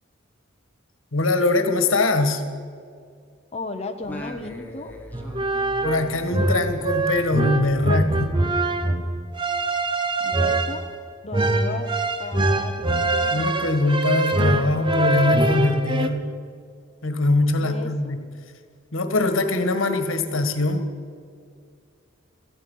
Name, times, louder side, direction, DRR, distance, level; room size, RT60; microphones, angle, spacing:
voice 1, 1.1-2.4 5.8-8.3 13.3-16.2 17.0-18.2 18.9-20.8, left 2 dB, 85° left, 8 dB, 1.6 m, -22 dB
voice 2, 3.5-5.0 10.2-10.9 11.2-13.6 17.6-18.2, left 2 dB, 30° left, 4 dB, 1.0 m, -35 dB
Singing, 4.0-8.8, equal, 10° left, 1.8 m, -40 dB
sound 1, 5.1-16.1, right 2 dB, 25° right, 0.9 m, -23 dB
18.0 x 14.5 x 5.6 m, 2.2 s
head